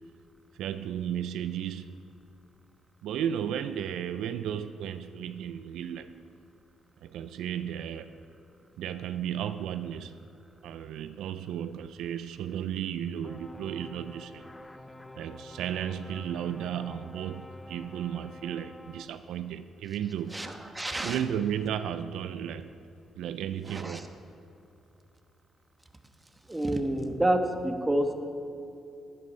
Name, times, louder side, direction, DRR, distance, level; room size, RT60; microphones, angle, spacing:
voice 1, 0.6-2.0 3.0-6.1 7.0-8.2 8.8-10.2 10.6-14.5 15.2-20.4 21.0-22.7 23.2-24.1, right 9 dB, 80° right, 11 dB, 0.4 m, -34 dB
sound 1, 13.2-19.1, left 1 dB, 10° left, 0.6 m, -48 dB
voice 2, 20.3-21.2 23.7-24.0 26.5-28.1, right 1 dB, 15° right, 5 dB, 1.2 m, -28 dB
11.5 x 11.5 x 5.4 m, 2.7 s
cardioid pair, 90°, 0 cm